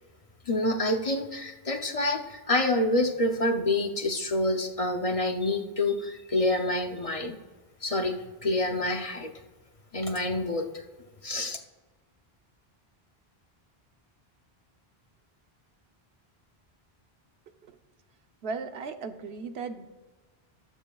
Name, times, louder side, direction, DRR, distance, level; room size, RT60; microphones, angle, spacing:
voice 1, 0.5-7.4 7.8-8.1 8.4-9.3 9.9-10.6 11.2-11.6, left 2 dB, 40° left, 4 dB, 0.6 m, -27 dB
voice 2, 18.4-19.9, right 4 dB, 85° right, 8 dB, 1.0 m, -36 dB
20.0 x 7.2 x 2.3 m, 1.3 s
omnidirectional pair, 1.0 m